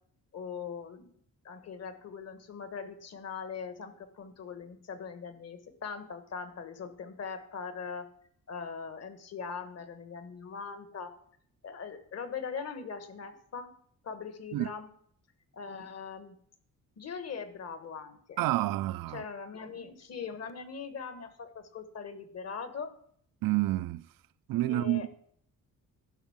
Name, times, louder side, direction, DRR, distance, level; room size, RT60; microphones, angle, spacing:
voice 1, 0.3-1.1 1.4-8.1 8.5-11.1 11.6-13.7 14.0-14.9 15.5-16.4 17.0-18.4 19.1-22.9 24.7-25.2, left 6 dB, 45° left, 1.4 m, -41 dB
voice 2, 18.4-19.2 23.4-24.1 24.5-25.1, right 16 dB, 85° right, 0.5 m, -29 dB
11.0 x 6.2 x 7.2 m
cardioid pair, 155°, 34 cm